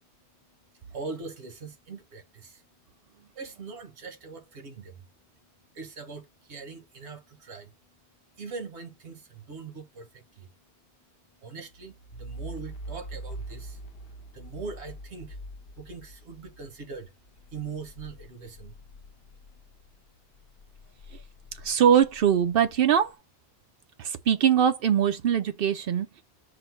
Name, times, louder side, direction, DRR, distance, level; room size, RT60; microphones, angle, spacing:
voice 1, 0.9-2.6 3.3-5.1 5.7-7.7 8.4-10.5 11.4-13.8 14.3-15.4 15.7-17.1 17.5-18.7, right 4 dB, 85° right, 1.3 m, -41 dB
sound 1, 11.7-20.0 20.3-22.9, right 1 dB, 65° left, 0.7 m, -44 dB
voice 2, 21.6-23.2 24.0-26.2, right 9 dB, 65° right, 0.7 m, -22 dB
5.0 x 2.1 x 4.4 m
omnidirectional pair, 1.1 m